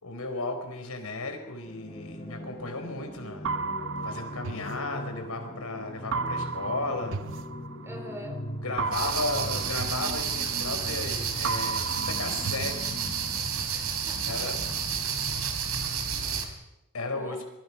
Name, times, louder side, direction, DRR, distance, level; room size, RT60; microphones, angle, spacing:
voice 1, 0.0-3.6 4.0-7.2 8.6-13.0 14.3-14.6 16.9-17.4, left 2 dB, 75° left, 6 dB, 4.5 m, -34 dB
sound 1, 1.6-16.6, equal, 30° left, 6.3 m, -40 dB
sound 2, 3.4-5.5 6.1-8.2 8.8-11.1 11.4-13.5, right 4 dB, 60° right, 0.7 m, -34 dB
voice 2, 7.8-8.5 8.9-9.1 13.7-14.4 16.2-16.5 17.1-17.4, equal, 10° right, 5 dB, 3.7 m, -44 dB
sound 3, 8.9-16.5, right 7 dB, 90° right, 3.4 m, -31 dB
24.5 x 22.5 x 5.9 m, 0.94 s
head